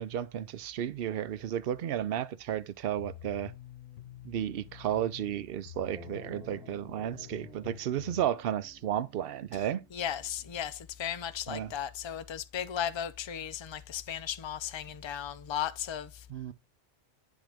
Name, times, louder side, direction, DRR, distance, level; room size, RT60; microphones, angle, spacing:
voice 1, 0.0-3.5 4.2-9.8 11.5-11.7 16.3-16.5, right 10 dB, 60° right, 0.7 m, -33 dB
sound 1, 3.0-8.3, left 12 dB, 90° left, 1.1 m, -48 dB
sound 2, 5.9-10.8, right 2 dB, 5° right, 1.4 m, -54 dB
voice 2, 9.9-16.3, left 9 dB, 50° left, 0.3 m, -36 dB
10.5 x 3.7 x 3.5 m
omnidirectional pair, 1.2 m